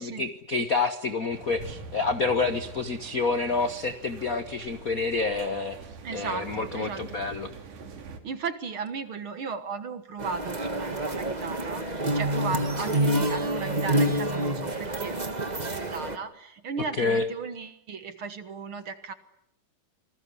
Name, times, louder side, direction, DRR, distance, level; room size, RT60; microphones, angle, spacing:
voice 1, 0.0-5.8 6.1-7.5 17.0-17.3, left 3 dB, 60° left, 10 dB, 0.9 m, -28 dB
sound 1, 1.3-8.2, right 4 dB, 80° right, 4.0 m, -44 dB
voice 2, 6.0-7.2 8.2-19.1, right 5 dB, 50° right, 11 dB, 1.9 m, -36 dB
sound 2, 10.2-16.2, right 1 dB, 20° right, 1.2 m, -27 dB
28.0 x 20.0 x 9.8 m, 0.73 s
omnidirectional pair, 3.5 m